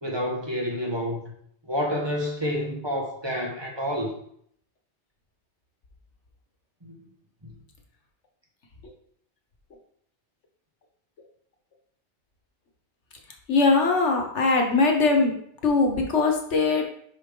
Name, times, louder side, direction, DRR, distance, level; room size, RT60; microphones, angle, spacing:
voice 1, 0.0-1.3 1.6-4.1 6.8-7.0 7.4-7.5, equal, 25° right, -1 dB, 1.3 m, -29 dB
voice 2, 13.5-15.3 15.6-16.8, left 3 dB, 85° left, 2 dB, 1.6 m, -21 dB
6.7 x 5.5 x 3.9 m, 0.66 s
omnidirectional pair, 1.2 m